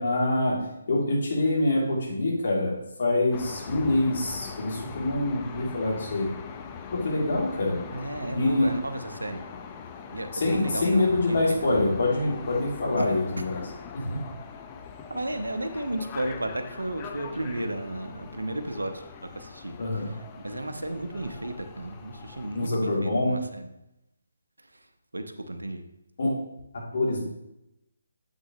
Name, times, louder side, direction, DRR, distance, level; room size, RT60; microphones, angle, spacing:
voice 1, 0.0-2.7 3.0-6.3 6.9-7.8 8.3-8.7 10.3-13.5 13.9-14.2 19.8-20.1 22.5-23.3 26.2-26.4 26.7-27.2, left 2 dB, 55° left, -4 dB, 2.9 m, -25 dB
sound 1, 3.3-22.7, left 6 dB, 20° left, 0.6 m, -42 dB
voice 2, 7.9-9.4 10.1-11.0 11.3-11.4 13.0-13.1 15.1-23.7 24.6-24.9 25.1-25.8, right 1 dB, 90° right, 6 dB, 0.9 m, -34 dB
7.7 x 6.3 x 3.1 m, 0.87 s
figure-of-eight pair, 150°, 0 cm